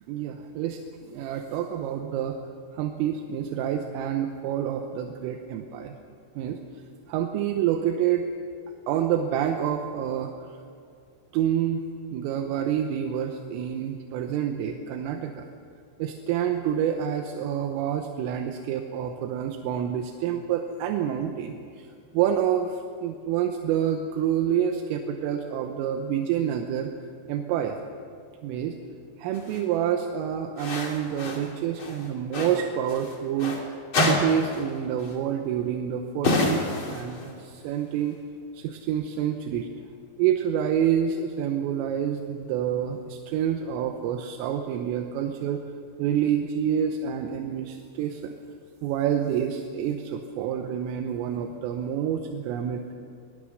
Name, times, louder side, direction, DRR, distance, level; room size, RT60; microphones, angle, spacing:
voice 1, 0.1-0.8 1.1-2.4 2.8-6.0 6.4-6.6 7.1-8.3 8.9-10.3 11.3-11.9 12.1-15.5 16.0-21.9 22.1-26.9 27.3-27.8 28.4-28.8 29.2-33.7 34.0-36.6 36.9-38.2 38.6-39.7 40.2-45.6 46.0-48.3 48.8-52.9, right 9 dB, 85° right, 4 dB, 3.6 m, -28 dB
sound 1, 29.3-29.6 30.6-31.5 31.8-33.6 33.9-34.7 35.0-35.1 36.2-37.4, left 2 dB, 35° left, 2.4 m, -28 dB
24.0 x 19.5 x 6.5 m, 2.4 s
omnidirectional pair, 5.8 m